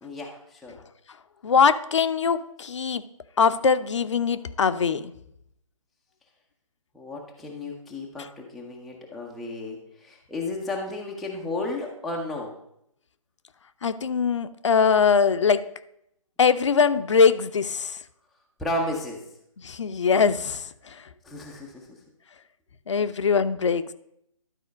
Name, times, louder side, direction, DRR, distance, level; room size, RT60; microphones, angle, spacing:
voice 1, 0.0-0.7 6.9-12.5 18.6-19.2 21.2-21.9, left 2 dB, ahead, -3 dB, 0.3 m, -33 dB
voice 2, 1.4-3.0 3.4-5.1 13.8-15.6 16.4-18.0 19.6-21.0 22.9-23.9, left 6 dB, 60° left, 11 dB, 0.5 m, -22 dB
11.5 x 4.2 x 5.1 m, 0.76 s
figure-of-eight pair, 140°, 18 cm